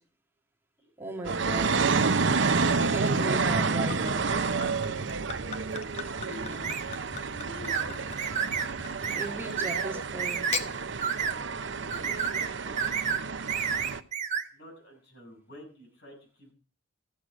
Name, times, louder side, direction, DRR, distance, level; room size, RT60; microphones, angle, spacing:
voice 1, 1.0-1.9 2.8-4.3 6.4-6.8 9.2-10.4, right 1 dB, 10° right, 0 dB, 1.9 m, -37 dB
sound 1, 1.2-14.0, right 4 dB, 60° right, 0.7 m, -29 dB
Gurgling / Chink clink / Liquid, 3.5-9.6 10.3-10.7, left 5 dB, 35° left, 1.0 m, -40 dB
voice 2, 4.8-5.2 6.2-6.9 7.3-8.3 11.2-12.8 14.5-16.5, equal, 55° left, 1 dB, 7.2 m, -48 dB
sound 2, 6.6-6.8 7.7-7.9 8.2-8.7 9.0-9.3 9.6-9.9 10.2-10.6 11.0-11.4 11.9-12.5 12.8-13.2 13.5-14.4, right 7 dB, 40° right, 1.2 m, -30 dB
14.5 x 8.0 x 6.2 m, 0.40 s
head